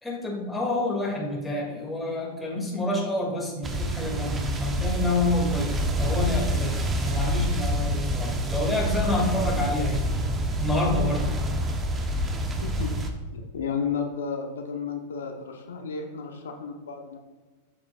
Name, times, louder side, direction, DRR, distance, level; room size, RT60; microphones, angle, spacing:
voice 1, 0.0-5.7 6.0-10.2 10.6-11.3, left 1 dB, 5° left, -3 dB, 2.3 m, -28 dB
sound 1, 3.6-13.1, equal, 20° right, 0.9 m, -27 dB
voice 2, 12.6-17.2, left 6 dB, 85° left, 4 dB, 0.8 m, -33 dB
8.3 x 7.4 x 2.4 m, 1.3 s
hypercardioid pair, 110°, 0 cm